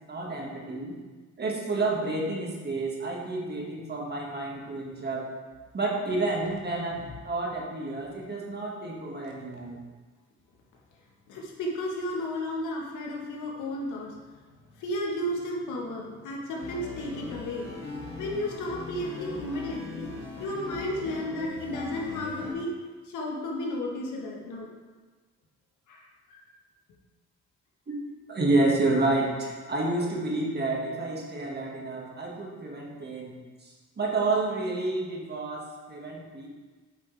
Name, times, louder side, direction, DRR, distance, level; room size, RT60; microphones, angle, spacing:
voice 1, 0.1-1.0 1.4-5.2 5.7-9.8 27.9-28.0 28.3-33.3 33.6-36.5, right 2 dB, 35° right, -2 dB, 1.8 m, -29 dB
voice 2, 11.3-14.5 14.8-17.7 18.2-20.1 20.4-22.7 23.0-24.7 25.9-26.0 26.3-26.4, left 1 dB, 80° left, -2 dB, 1.5 m, -33 dB
sound 1, 16.6-22.5, left 3 dB, 35° left, 1.9 m, -40 dB
8.2 x 5.5 x 3.4 m, 1.4 s
cardioid pair, 90°, 30 cm